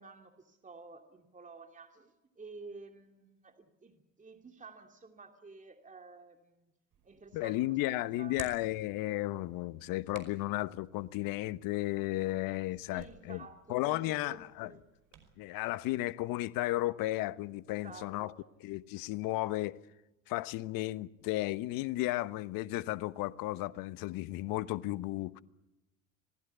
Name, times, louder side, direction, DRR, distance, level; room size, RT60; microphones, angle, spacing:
voice 1, 0.0-6.7 7.0-8.4 12.9-14.8 17.7-18.3, right 4 dB, 20° right, 2.7 m, -52 dB
Hands, 6.9-15.3, right 8 dB, 55° right, 5.3 m, -56 dB
voice 2, 7.3-14.7 15.4-18.3 18.6-19.8 20.3-25.4, left 17 dB, 60° left, 1.1 m, -34 dB
27.0 x 19.0 x 8.2 m
hypercardioid pair, 70°, 39 cm